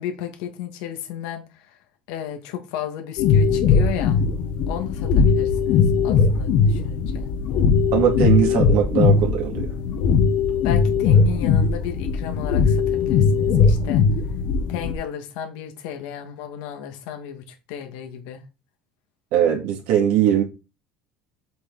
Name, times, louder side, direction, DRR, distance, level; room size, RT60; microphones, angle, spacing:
voice 1, 0.0-1.8 2.1-4.2 4.7-7.3 10.6-14.0 14.7-18.4, left 10 dB, 80° left, 2.2 m, -34 dB
sound 1, 3.2-14.9, left 5 dB, 60° left, 1.6 m, -19 dB
voice 2, 7.9-9.7 19.3-20.4, right 10 dB, 75° right, 2.4 m, -20 dB
7.7 x 5.6 x 4.1 m
supercardioid pair, 120°, 4 cm